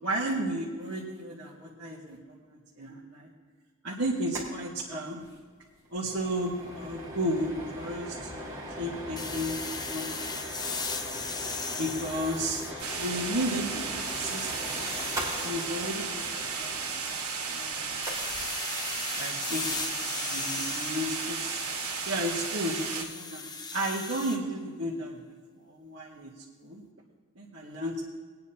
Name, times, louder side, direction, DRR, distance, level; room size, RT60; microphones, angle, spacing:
voice 1, 0.0-3.3 3.8-5.2 5.9-10.8 11.8-12.6 13.0-17.2 17.5-18.1 19.1-21.6 22.0-25.2 25.6-26.8 27.4-28.1, equal, 60° right, -7 dB, 1.7 m, -34 dB
sound 1, 4.2-4.5 4.7-4.8 5.2-5.4 5.7-18.4, right 1 dB, 15° right, 3.0 m, -40 dB
sound 2, 9.2-13.4 13.8-15.5 18.0-24.4, left 4 dB, 20° left, 0.6 m, -38 dB
sound 3, 12.8-23.1, right 5 dB, 75° right, 2.1 m, -34 dB
21.5 x 9.5 x 2.9 m, 1.5 s
head